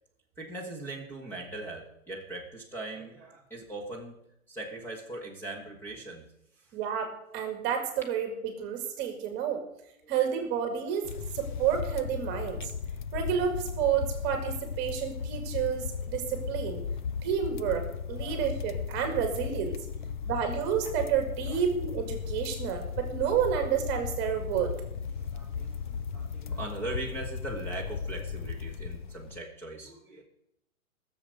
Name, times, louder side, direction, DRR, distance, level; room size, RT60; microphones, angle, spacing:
voice 1, 0.4-4.2 4.5-6.2 18.2-18.4 19.9-20.3 21.5-21.6 25.1-30.2, right 2 dB, 5° left, -1 dB, 1.9 m, -40 dB
voice 2, 6.7-9.6 10.1-12.6 13.1-16.8 17.2-19.8 20.3-24.8, right 8 dB, 25° right, 5 dB, 2.1 m, -30 dB
sound 1, 11.0-29.4, left 6 dB, 40° left, 0.4 m, -36 dB
15.0 x 7.2 x 8.0 m, 0.78 s
hypercardioid pair, 150°, 41 cm